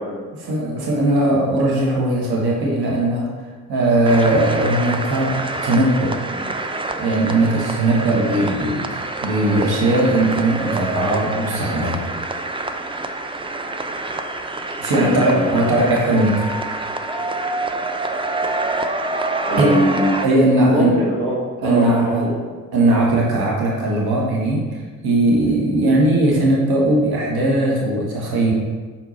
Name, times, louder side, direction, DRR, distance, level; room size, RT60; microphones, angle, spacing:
voice 1, 0.4-6.6 6.9-12.1 14.8-16.5 19.6-19.8 20.2-20.9 21.6-22.3 22.7-28.5, right 1 dB, 55° right, -2 dB, 1.4 m, -19 dB
sound 1, 4.0-20.3, right 2 dB, 10° right, 0.5 m, -27 dB
voice 2, 14.9-15.8 19.4-22.3 22.8-22.9, equal, 85° right, -5 dB, 1.6 m, -22 dB
5.6 x 4.7 x 4.2 m, 1.4 s
hypercardioid pair, 45°, 45 cm